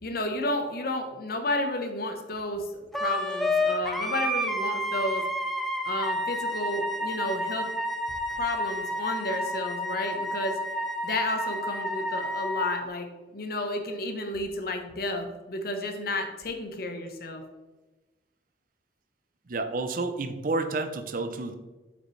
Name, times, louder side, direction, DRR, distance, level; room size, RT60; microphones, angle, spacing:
voice 1, 0.0-2.7 2.9-5.2 5.8-7.7 8.3-10.6 11.0-13.1 13.3-17.4, left 1 dB, 55° left, 5 dB, 1.0 m, -31 dB
Wind instrument woodwind instrument, 2.9-12.8, equal, ahead, 0.6 m, -30 dB
voice 2, 19.5-21.6, right 3 dB, 50° right, 8 dB, 0.6 m, -30 dB
7.6 x 5.6 x 3.2 m, 1.2 s
head